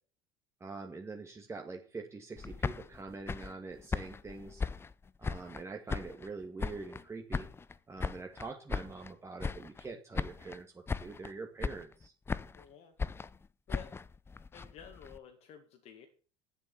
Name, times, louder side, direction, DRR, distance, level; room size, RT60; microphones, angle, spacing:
voice 1, 0.6-4.6 5.2-7.5 7.9-12.1, right 3 dB, 20° right, 2 dB, 2.0 m, -44 dB
sound 1, 2.4-5.6 5.9-7.0 7.3-9.1 9.4-9.9 10.1-10.6 10.9-11.3 11.6-12.7 13.0-15.2, left 4 dB, 15° left, 0.6 m, -38 dB
voice 2, 12.5-13.0 13.7-14.0 14.5-16.1, left 8 dB, 50° left, 5 dB, 1.9 m, -51 dB
11.0 x 7.5 x 7.0 m, 0.40 s
hypercardioid pair, 70°, 14 cm